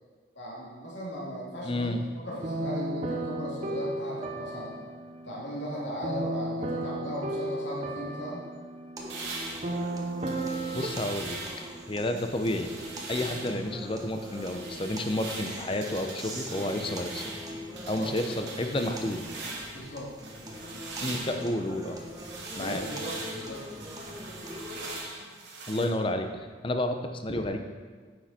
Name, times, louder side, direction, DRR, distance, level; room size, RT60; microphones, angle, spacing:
voice 1, 0.3-4.8 5.2-8.4 18.0-18.1 19.7-20.1 22.5-23.6, equal, 70° left, -5 dB, 2.7 m, -37 dB
voice 2, 1.6-2.0 10.7-11.4 11.9-12.7 13.1-17.2 17.9-19.2 21.0-22.0 22.6-22.8 25.7-26.3 26.6-27.6, left 1 dB, 25° left, 6 dB, 0.7 m, -30 dB
sound 1, 2.3-10.9, right 1 dB, 35° right, 0.9 m, -34 dB
sound 2, 9.0-25.0, equal, 20° right, 1.2 m, -42 dB
sound 3, 9.1-11.8 12.2-13.6 14.0-19.9 20.2-25.9, right 3 dB, 65° right, 2.1 m, -41 dB
9.7 x 8.6 x 4.3 m, 1.5 s
head